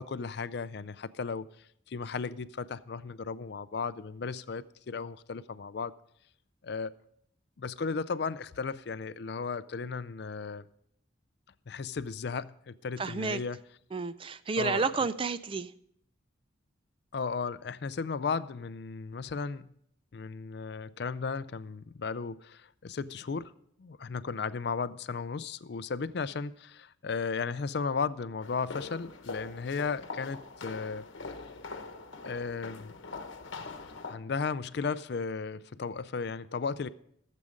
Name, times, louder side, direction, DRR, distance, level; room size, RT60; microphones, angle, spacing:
voice 1, 0.0-5.9 6.6-6.9 7.6-10.6 11.7-13.6 14.6-14.9 17.1-19.7 20.1-23.5 23.8-31.1 32.2-32.9 34.0-36.9, left 5 dB, 55° left, 0.4 m, -35 dB
voice 2, 13.0-13.4 13.9-15.7, right 4 dB, 25° right, 0.3 m, -31 dB
sound 1, 28.4-34.2, left 3 dB, 75° left, 1.0 m, -43 dB
14.5 x 7.6 x 5.1 m
head